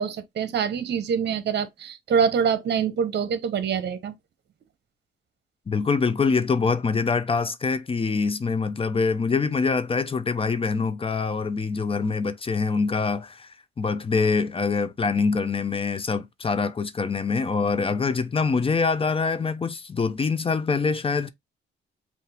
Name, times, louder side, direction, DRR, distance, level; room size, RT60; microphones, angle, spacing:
voice 1, 0.0-4.1, right 7 dB, 60° right, 1.0 m, -25 dB
voice 2, 5.7-21.3, left 4 dB, 30° left, 0.6 m, -24 dB
5.6 x 2.6 x 3.4 m
cardioid pair, 90°, 20 cm